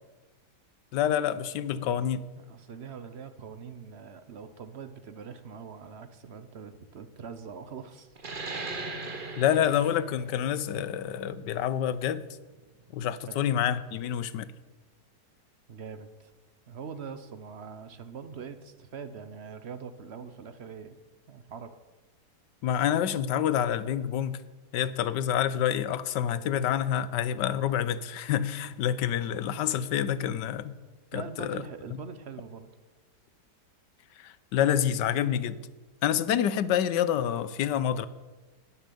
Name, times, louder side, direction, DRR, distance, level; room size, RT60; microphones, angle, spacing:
voice 1, 0.9-2.2 9.4-12.2 12.9-14.5 22.6-24.4 24.7-30.7 31.1-31.6 34.2-35.6 36.0-38.1, left 10 dB, 85° left, 16 dB, 1.3 m, -27 dB
voice 2, 2.4-8.1 13.3-13.4 15.7-16.3 16.7-21.0 21.3-21.8 31.1-32.7, right 6 dB, 50° right, 11 dB, 0.9 m, -43 dB
sound 1, 8.2-13.3, right 3 dB, 35° right, 1.2 m, -40 dB
12.0 x 7.1 x 9.9 m, 1.2 s
omnidirectional pair, 1.9 m